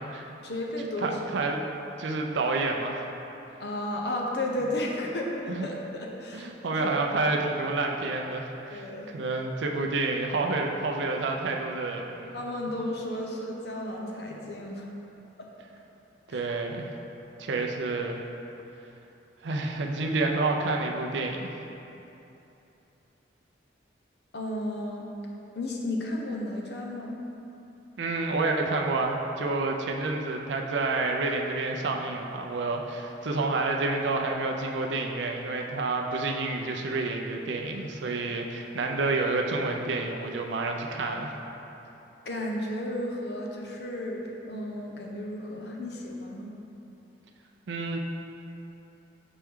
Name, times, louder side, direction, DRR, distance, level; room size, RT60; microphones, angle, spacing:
voice 1, 0.4-1.2 3.6-6.9 8.7-9.1 12.3-14.9 16.3-16.5 24.3-25.1 25.5-27.2 42.3-46.5, left 1 dB, 60° left, -1 dB, 0.7 m, -33 dB
voice 2, 1.0-1.6 2.0-3.0 5.5-5.7 6.3-12.4 16.3-16.9 17.4-18.2 19.4-21.5 28.0-41.3 47.7-48.0, right 3 dB, 75° right, 2 dB, 0.5 m, -29 dB
6.0 x 4.4 x 3.6 m, 2.9 s
head